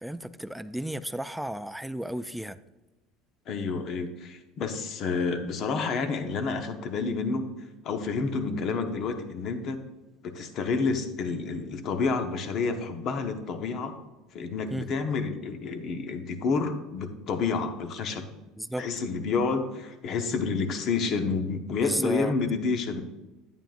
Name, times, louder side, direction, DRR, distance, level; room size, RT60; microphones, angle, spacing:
voice 1, 0.0-2.6 14.7-14.9 18.6-18.9 21.8-22.3, right 1 dB, 5° right, 13 dB, 0.3 m, -33 dB
voice 2, 3.5-7.5 7.8-9.8 10.2-13.9 14.3-18.2 18.7-23.0, left 4 dB, 55° left, 7 dB, 1.0 m, -29 dB
9.0 x 9.0 x 2.5 m, 1.1 s
supercardioid pair, 95°, 0 cm